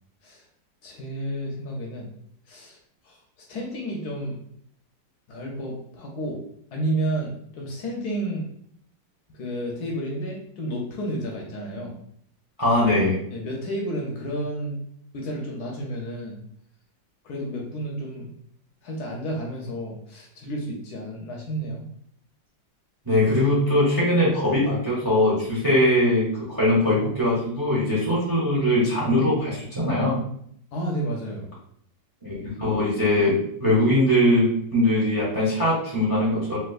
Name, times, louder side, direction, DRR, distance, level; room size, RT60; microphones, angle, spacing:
voice 1, 0.8-2.1 2.5-2.8 3.0-3.2 3.5-4.4 5.3-6.4 6.7-8.4 9.3-11.9 13.3-14.8 15.1-16.3 17.2-18.3 18.8-21.9 30.7-31.5, right 1 dB, 70° left, 0 dB, 1.0 m, -31 dB
voice 2, 12.6-13.2 23.1-30.2 32.2-36.6, left 1 dB, 25° right, -6 dB, 0.5 m, -21 dB
3.3 x 2.9 x 2.3 m, 0.67 s
omnidirectional pair, 2.0 m